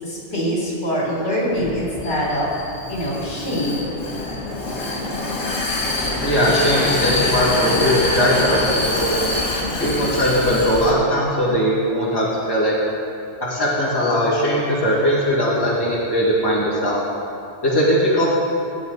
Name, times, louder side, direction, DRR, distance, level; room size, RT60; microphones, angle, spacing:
voice 1, 0.0-2.5 2.9-3.9, equal, 65° left, -5 dB, 4.0 m, -24 dB
Vehicle, 1.5-10.9, left 2 dB, 85° left, 2.1 m, -24 dB
voice 2, 6.2-9.1 9.8-12.7 13.4-17.0 17.6-18.2, equal, 20° left, -7 dB, 2.5 m, -19 dB
20.0 x 8.6 x 4.1 m, 2.6 s
omnidirectional pair, 1.3 m